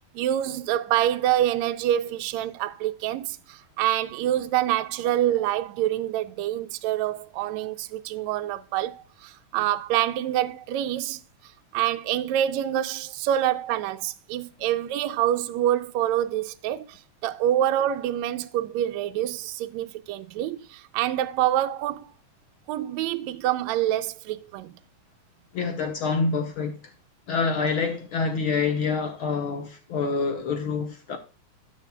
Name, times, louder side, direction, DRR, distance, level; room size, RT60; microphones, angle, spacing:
voice 1, 0.1-11.2 11.7-22.1 22.7-24.8, right 12 dB, 85° right, 1.6 m, -26 dB
voice 2, 25.5-26.8 27.3-31.2, left 4 dB, 65° left, 1.3 m, -26 dB
12.5 x 9.9 x 2.3 m
omnidirectional pair, 3.8 m